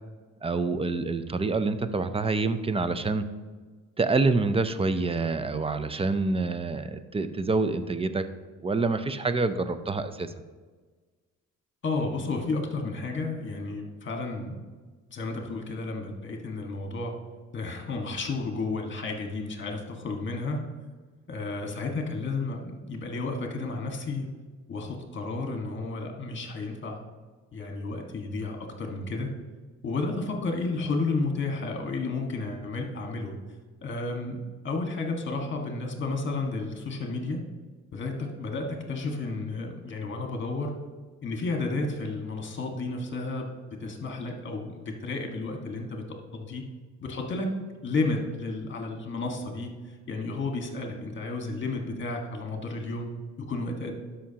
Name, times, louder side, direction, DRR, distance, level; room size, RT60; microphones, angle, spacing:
voice 1, 0.4-3.2 4.0-8.2 8.6-10.3, right 3 dB, 20° right, 11 dB, 0.5 m, -27 dB
voice 2, 11.8-14.6 15.1-17.1 17.5-20.6 21.3-22.6 22.9-24.3 24.7-27.0 27.5-29.3 29.8-33.3 33.8-34.4 34.6-37.4 37.9-40.7 41.2-43.5 43.8-46.0 46.3-46.6 47.0-47.5 47.8-49.7 50.1-53.1 53.5-53.9, left 3 dB, 40° left, 2 dB, 1.6 m, -32 dB
12.5 x 5.7 x 2.9 m, 1.4 s
cardioid pair, 90°, 30 cm